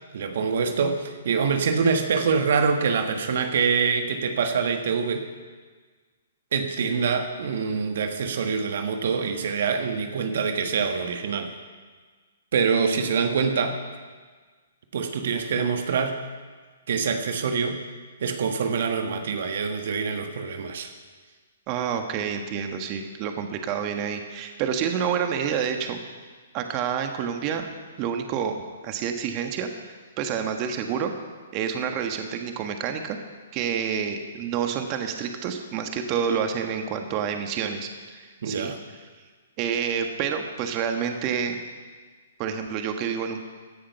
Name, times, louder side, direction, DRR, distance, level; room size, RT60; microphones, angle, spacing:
voice 1, 0.1-5.3 6.5-11.5 12.5-13.8 14.9-16.2 16.9-17.8 18.2-20.9 38.4-38.8, right 5 dB, 60° right, 6 dB, 1.4 m, -25 dB
voice 2, 21.7-26.0 26.5-27.7 28.0-28.6 28.8-31.1 31.5-33.2 33.5-38.7 39.6-41.6 42.4-43.5, right 7 dB, 35° right, 5 dB, 1.4 m, -28 dB
16.0 x 10.0 x 5.8 m, 1.5 s
hypercardioid pair, 130°, 0 cm